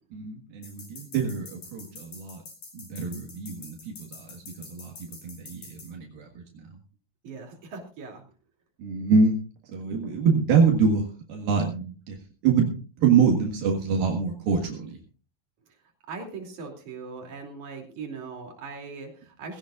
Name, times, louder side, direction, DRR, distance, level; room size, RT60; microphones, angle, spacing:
voice 1, 0.1-2.4 2.7-6.7 8.8-9.4 9.6-12.2 12.4-15.0, right 5 dB, 75° right, 0 dB, 3.6 m, -25 dB
sound 1, 0.6-5.9, left 3 dB, 65° left, 7.2 m, -45 dB
voice 2, 7.2-8.2 16.1-19.6, right 4 dB, 55° right, 2 dB, 4.2 m, -39 dB
19.0 x 17.0 x 2.5 m, 0.36 s
omnidirectional pair, 4.3 m